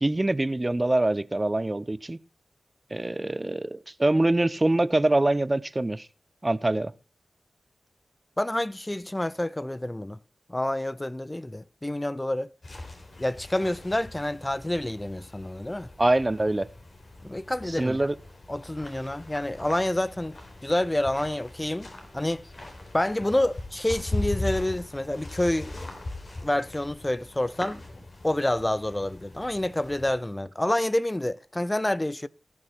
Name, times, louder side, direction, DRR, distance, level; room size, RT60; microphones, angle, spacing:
voice 1, 0.0-2.2 2.9-6.1 6.4-6.9 16.0-16.7 17.7-18.1, right 2 dB, 30° right, 0.5 m, -24 dB
voice 2, 8.4-10.2 10.5-12.5 13.2-15.9 17.2-18.1 18.5-22.5 22.9-25.7 26.4-27.8 28.2-32.3, left 1 dB, 20° left, 0.5 m, -28 dB
sound 1, 12.6-30.1, left 2 dB, 50° left, 3.7 m, -40 dB
18.5 x 6.3 x 4.3 m
cardioid pair, 40°, 0 cm